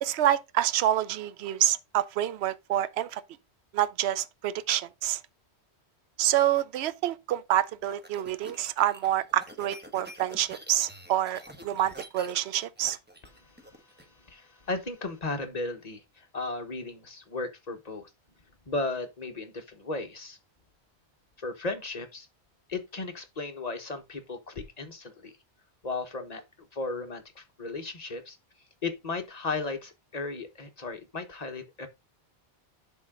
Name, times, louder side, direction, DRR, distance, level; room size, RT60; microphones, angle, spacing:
voice 1, 0.0-3.2 3.7-5.2 6.2-13.0, right 12 dB, 75° right, 0.8 m, -27 dB
sound 1, 7.5-14.0, equal, 10° right, 1.1 m, -47 dB
voice 2, 13.4-18.1 18.7-20.4 21.4-22.3 22.7-25.3 25.8-26.4 26.7-28.4 28.8-31.9, left 3 dB, 40° left, 1.3 m, -35 dB
10.5 x 3.9 x 3.8 m
omnidirectional pair, 1.1 m